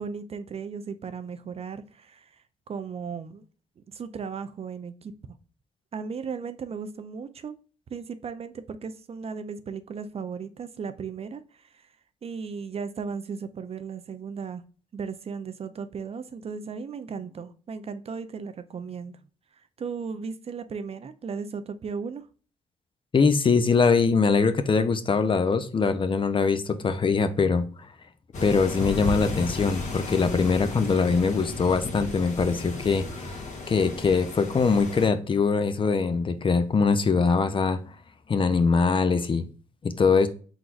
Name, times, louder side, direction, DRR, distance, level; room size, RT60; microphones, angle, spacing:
voice 1, 0.0-2.3 2.7-3.4 3.9-5.1 5.9-7.6 7.9-11.9 12.2-14.6 14.9-19.2 19.8-22.3, right 5 dB, 45° right, 0.5 m, -36 dB
voice 2, 23.1-27.6 28.4-33.1 33.7-37.8 38.3-39.5 39.8-40.3, left 5 dB, 35° left, 0.6 m, -22 dB
sound 1, 28.3-35.1, left 2 dB, 55° left, 1.6 m, -34 dB
4.5 x 3.9 x 2.5 m
supercardioid pair, 70°, 15 cm